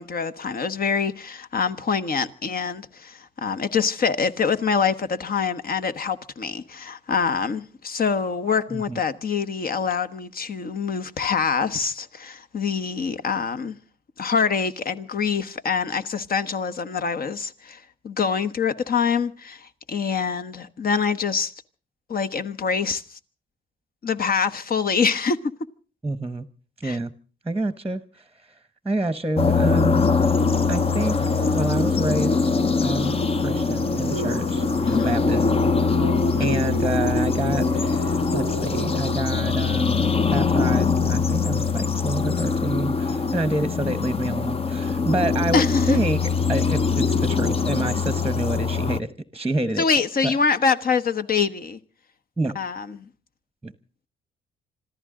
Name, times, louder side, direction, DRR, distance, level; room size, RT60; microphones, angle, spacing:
voice 1, 0.0-13.8 14.2-21.5 22.1-23.2 24.0-25.5 26.8-27.0 34.9-35.1 36.4-36.6 45.5-46.0 49.8-51.8 52.5-53.1, left 5 dB, 50° left, 1.3 m, -25 dB
voice 2, 26.0-26.5 26.8-27.1 27.4-28.0 28.8-30.0 30.7-31.2 31.5-32.4 32.8-33.2 33.4-35.4 36.4-49.1 49.3-49.8 50.2-50.3 52.4-52.5 53.6-53.7, right 2 dB, 10° right, 1.1 m, -27 dB
sound 1, 29.4-49.0, left 5 dB, 30° left, 0.7 m, -23 dB
sound 2, 30.4-42.7, equal, 65° left, 6.4 m, -32 dB
26.5 x 14.5 x 3.8 m
cardioid pair, 90°, 20 cm